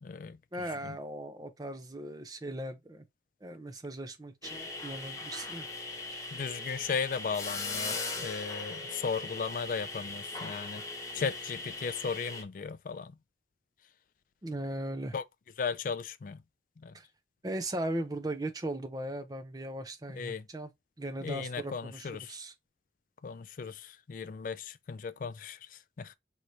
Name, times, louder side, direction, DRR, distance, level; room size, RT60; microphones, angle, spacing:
voice 1, 0.0-0.4 0.8-1.0 6.3-10.8 11.1-13.1 15.1-15.2 15.6-16.4 16.8-16.9 20.1-20.4 21.2-22.3 23.2-26.2, left 5 dB, 45° left, 0.3 m, -36 dB
voice 2, 0.5-3.0 3.4-5.6 6.1-6.2 14.4-15.1 16.9-17.0 17.4-20.7 21.0-22.5, right 1 dB, 20° right, 0.5 m, -38 dB
sound 1, 4.4-12.4, left 3 dB, 15° left, 0.7 m, -39 dB
4.6 x 3.1 x 2.6 m
head